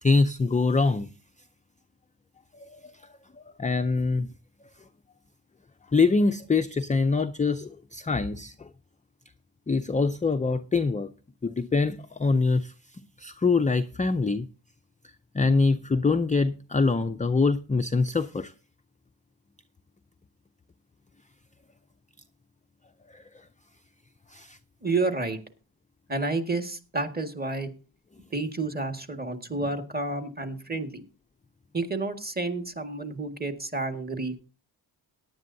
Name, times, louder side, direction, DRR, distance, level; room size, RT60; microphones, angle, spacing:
voice 1, 0.0-1.1 2.5-2.9 3.6-4.3 5.9-8.7 9.7-11.1 11.4-12.7 13.2-14.5 15.3-18.5 23.1-23.2 24.3-24.6, left 4 dB, 15° left, 9 dB, 0.4 m, -24 dB
voice 2, 24.8-25.4 26.1-27.7 28.3-31.0 31.7-34.4, right 3 dB, 20° right, 5 dB, 1.8 m, -30 dB
17.5 x 10.5 x 2.7 m, 0.35 s
cardioid pair, 85°, 48 cm